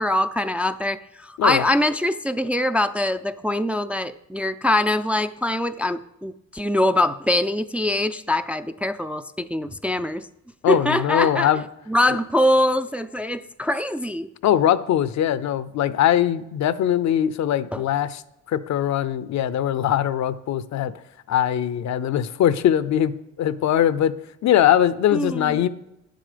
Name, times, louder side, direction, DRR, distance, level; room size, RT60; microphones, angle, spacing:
voice 1, 0.0-10.3 10.7-11.5 11.9-14.3 17.7-17.8 25.1-25.6, left 1 dB, 5° right, 9 dB, 0.3 m, -23 dB
voice 2, 10.6-11.6 14.4-18.2 18.5-20.9 21.3-24.1 24.4-25.7, left 10 dB, 65° left, 16 dB, 0.6 m, -21 dB
9.8 x 7.6 x 5.1 m, 0.88 s
cardioid pair, 90°, 30 cm